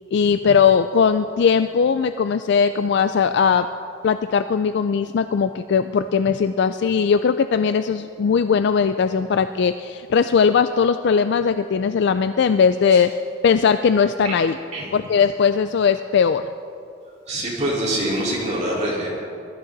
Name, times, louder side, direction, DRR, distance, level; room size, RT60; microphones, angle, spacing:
voice 1, 0.1-3.7 4.0-13.1 13.4-14.6 14.9-16.4, left 6 dB, 60° left, 11 dB, 0.3 m, -19 dB
voice 2, 17.3-19.1, right 1 dB, 35° right, -6 dB, 4.1 m, -24 dB
21.5 x 13.5 x 4.0 m, 2.6 s
head